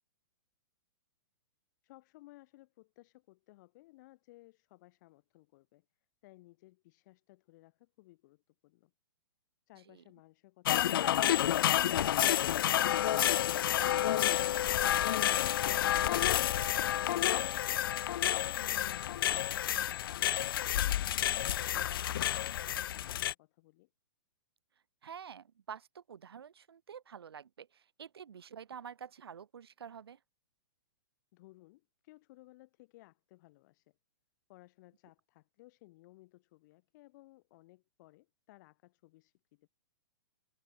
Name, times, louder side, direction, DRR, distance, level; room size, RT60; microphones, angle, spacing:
voice 1, 1.8-5.9 6.2-8.9 20.8-23.9 31.3-34.0 34.5-39.7, left 20 dB, 50° left, 7.2 m, -60 dB
sound 1, 10.6-23.3, left 12 dB, 65° left, 0.4 m, -30 dB
voice 2, 25.0-30.2, right 7 dB, 75° right, 1.5 m, -48 dB
hypercardioid pair, 125°, 13 cm